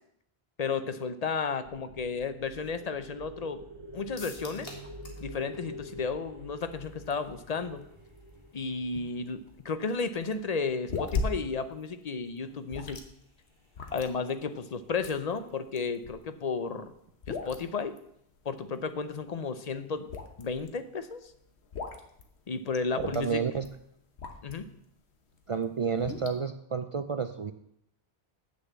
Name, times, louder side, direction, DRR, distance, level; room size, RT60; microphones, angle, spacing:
voice 1, 0.6-3.6 3.9-4.7 5.2-7.8 8.5-13.0 13.9-16.9 17.3-18.0 18.5-20.1 20.4-21.3 22.5-23.4 24.4-24.7, left 5 dB, 45° left, 10 dB, 0.7 m, -33 dB
sound 1, 1.6-9.8, equal, 25° right, 1.9 m, -46 dB
sound 2, 4.2-5.3 5.5-5.6 6.0-6.1, left 2 dB, 65° left, 1.8 m, -46 dB
sound 3, 6.7-24.8 25.2-26.4, left 4 dB, 85° left, 1.3 m, -40 dB
voice 2, 22.9-23.7 25.5-27.5, right 6 dB, 55° right, 9 dB, 0.3 m, -30 dB
8.0 x 6.6 x 7.4 m, 0.74 s
omnidirectional pair, 1.1 m